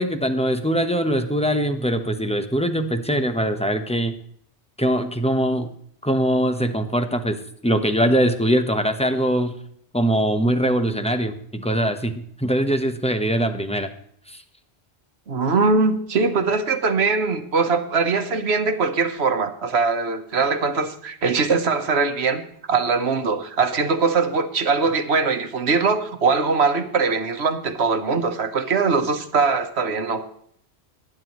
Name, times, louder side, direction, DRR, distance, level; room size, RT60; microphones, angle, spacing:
voice 1, 0.0-4.1 4.8-5.7 6.0-7.4 7.6-9.5 9.9-13.9 14.3-14.4, equal, 5° left, 7 dB, 1.0 m, -22 dB
voice 2, 15.3-22.4 22.7-30.2, right 4 dB, 75° right, 8 dB, 1.4 m, -21 dB
21.5 x 9.8 x 3.1 m, 0.65 s
omnidirectional pair, 1.1 m